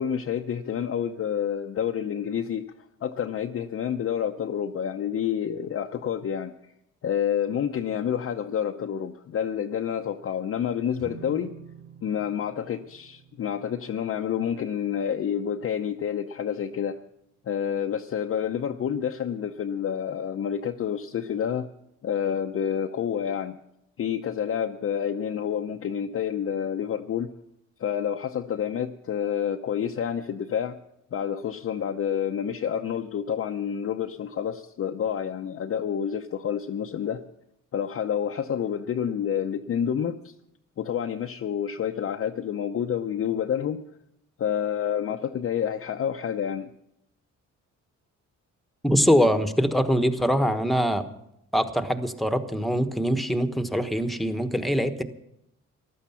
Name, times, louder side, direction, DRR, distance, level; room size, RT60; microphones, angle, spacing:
voice 1, 0.0-2.7 3.0-6.5 7.0-11.5 12.0-17.0 17.5-21.7 22.0-23.6 24.0-27.3 27.8-30.8 31.1-37.2 37.7-40.3 40.8-43.9 44.4-46.7, left 8 dB, 50° left, 4 dB, 0.7 m, -28 dB
sound 1, 11.0-17.4, right 7 dB, 45° right, 4.0 m, -50 dB
voice 2, 48.8-51.0 51.5-55.0, equal, ahead, 8 dB, 1.2 m, -23 dB
15.0 x 12.0 x 5.7 m, 0.81 s
cardioid pair, 90°, 30 cm